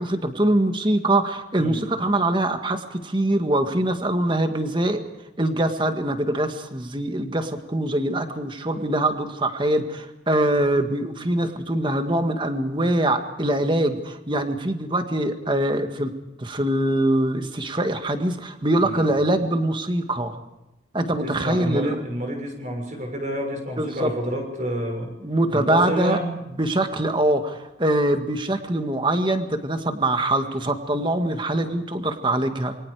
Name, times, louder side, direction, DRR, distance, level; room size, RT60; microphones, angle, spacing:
voice 1, 0.0-5.1 5.4-16.1 16.4-20.4 20.9-22.0 23.8-24.1 25.2-26.2 26.6-32.8, right 1 dB, 25° right, 7 dB, 1.8 m, -23 dB
voice 2, 21.2-25.1 25.5-26.3, equal, 40° right, 3 dB, 6.4 m, -29 dB
28.0 x 23.5 x 5.0 m, 0.94 s
head